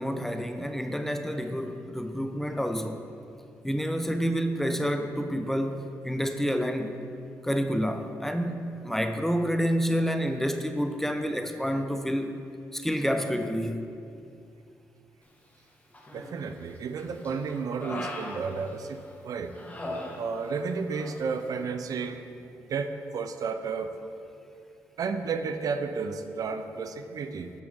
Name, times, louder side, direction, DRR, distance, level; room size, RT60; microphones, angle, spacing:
voice 1, 0.0-3.0 3.6-7.0 7.4-12.4 12.7-13.9, equal, 5° left, 7 dB, 0.6 m, -28 dB
Human voice, 15.9-16.6 17.0-19.1 19.5-20.6 20.9-21.2, left 1 dB, 25° left, 1.6 m, -39 dB
voice 2, 16.1-19.5 20.2-22.2 22.7-23.9 25.0-27.5, right 5 dB, 65° right, 8 dB, 0.5 m, -32 dB
8.3 x 6.9 x 3.5 m, 2.5 s
supercardioid pair, 55°, 7 cm